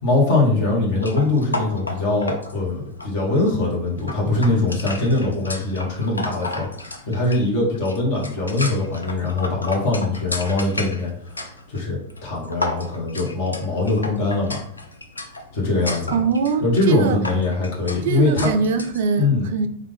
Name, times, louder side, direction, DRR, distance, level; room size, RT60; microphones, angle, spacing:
voice 1, 0.0-6.7 7.1-11.1 11.7-14.6 15.5-16.1 16.6-18.5 19.2-19.5, left 2 dB, 50° left, 1.4 m, -22 dB
sound 1, 0.9-19.0, left 2 dB, 80° left, 0.4 m, -34 dB
voice 2, 16.1-17.2 18.0-19.7, right 5 dB, 55° right, 0.4 m, -22 dB
3.4 x 2.5 x 3.4 m
figure-of-eight pair, 90°, 0 cm